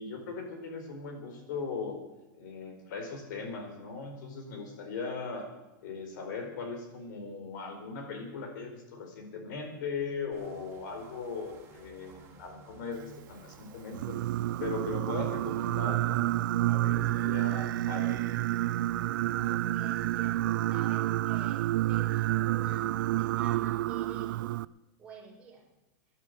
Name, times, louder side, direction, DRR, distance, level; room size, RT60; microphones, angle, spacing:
voice 1, 0.0-2.0 2.4-5.5 5.8-14.2 14.6-18.2, left 4 dB, 70° left, 5 dB, 4.5 m, -39 dB
sound 1, 10.3-15.8, right 4 dB, 25° right, 3.5 m, -54 dB
Singing, 13.9-24.7, right 15 dB, 80° right, 0.5 m, -29 dB
voice 2, 19.3-24.5 25.0-25.7, right 4 dB, 10° right, -4 dB, 4.7 m, -50 dB
18.0 x 11.0 x 6.7 m, 1.0 s
supercardioid pair, 150°, 11 cm